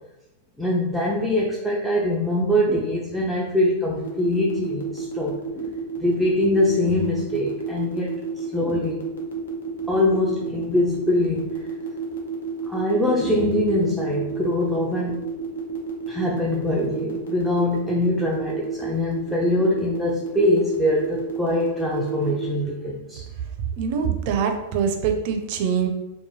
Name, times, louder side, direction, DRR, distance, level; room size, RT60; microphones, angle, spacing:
voice 1, 0.6-9.0 9.9-11.7 12.7-15.3 16.1-23.2, left 1 dB, ahead, -4 dB, 0.4 m, -23 dB
sound 1, 4.0-22.5, right 6 dB, 75° left, 0.6 m, -31 dB
voice 2, 23.8-25.9, right 7 dB, 55° right, 5 dB, 0.4 m, -24 dB
3.0 x 2.2 x 2.6 m, 0.95 s
hypercardioid pair, 100°, 0 cm